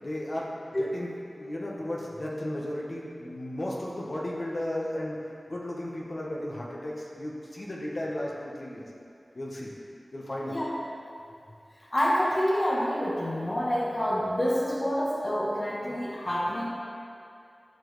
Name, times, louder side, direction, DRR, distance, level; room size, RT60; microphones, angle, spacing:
voice 1, 0.0-1.1 1.4-5.2 5.5-8.8 9.3-9.7 10.1-10.6, left 1 dB, 55° left, -4 dB, 1.2 m, -34 dB
voice 2, 11.9-16.7, equal, 35° left, -4 dB, 1.1 m, -27 dB
13.5 x 5.2 x 3.2 m, 2.5 s
wide cardioid pair, 70°, 0 cm